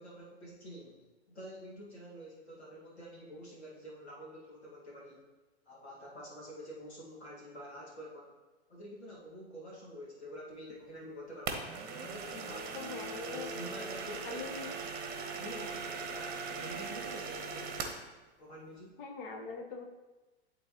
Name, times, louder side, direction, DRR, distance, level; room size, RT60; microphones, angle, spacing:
voice 1, 0.0-5.2 5.7-8.4 8.7-11.7 12.0-12.9 13.2-14.5 14.9-15.0 15.4-17.8 18.4-19.0, equal, 75° left, -4 dB, 2.0 m, -48 dB
sound 1, 11.5-18.1, right 4 dB, 25° right, 1.0 m, -40 dB
voice 2, 12.7-13.5 14.2-14.7 19.0-19.8, left 4 dB, 45° left, 3 dB, 1.2 m, -42 dB
11.0 x 3.8 x 3.0 m, 1.2 s
figure-of-eight pair, 100°, 33 cm